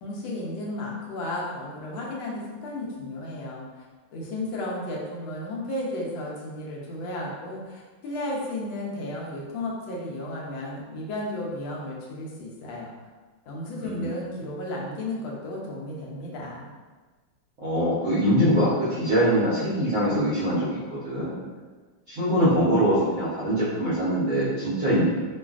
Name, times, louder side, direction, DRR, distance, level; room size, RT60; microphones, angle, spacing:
voice 1, 0.0-3.8 4.1-12.9 13.5-16.7, left 1 dB, 80° left, -3 dB, 1.3 m, -33 dB
voice 2, 13.8-14.1 17.6-21.4 22.1-25.0, equal, 60° right, -11 dB, 0.8 m, -23 dB
3.2 x 2.4 x 2.3 m, 1.3 s
omnidirectional pair, 2.2 m